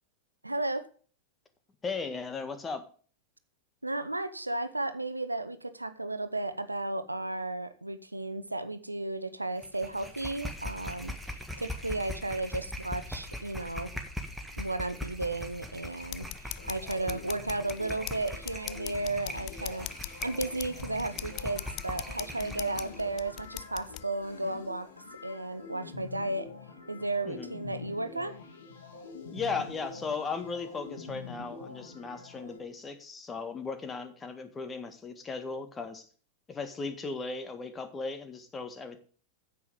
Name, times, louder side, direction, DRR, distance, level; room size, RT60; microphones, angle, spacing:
voice 1, 0.4-0.9 3.8-11.1 11.6-13.9 14.6-24.9 25.2-26.5 26.9-28.4, right 2 dB, 85° right, 11 dB, 0.8 m, -34 dB
voice 2, 1.8-2.8 27.2-27.5 29.3-36.1 36.5-39.0, left 4 dB, 20° left, 8 dB, 1.7 m, -37 dB
sound 1, 9.6-23.0, left 1 dB, ahead, 1.7 m, -41 dB
sound 2, 16.0-24.0, left 16 dB, 40° left, 0.5 m, -42 dB
sound 3, 16.6-32.6, left 4 dB, 65° left, 2.8 m, -46 dB
9.6 x 7.9 x 5.3 m, 0.42 s
figure-of-eight pair, 90°, 0 cm